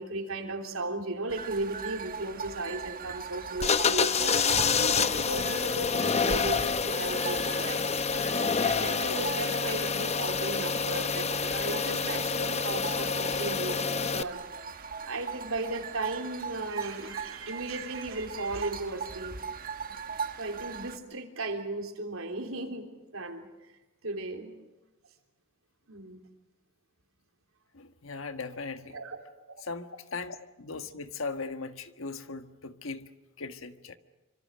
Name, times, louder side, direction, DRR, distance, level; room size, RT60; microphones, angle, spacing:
voice 1, 0.0-19.4 19.9-20.0 20.4-23.5 24.0-24.6 25.9-26.3 28.9-29.2, right 2 dB, 85° right, 4 dB, 3.5 m, -36 dB
sound 1, 1.3-21.0, right 6 dB, 45° right, 1.4 m, -40 dB
sound 2, 3.6-14.2, left 5 dB, 30° left, 0.7 m, -28 dB
voice 2, 27.7-29.0 29.6-33.1 33.4-34.0, left 4 dB, 75° left, 9 dB, 1.5 m, -38 dB
26.5 x 25.5 x 6.5 m, 1.1 s
head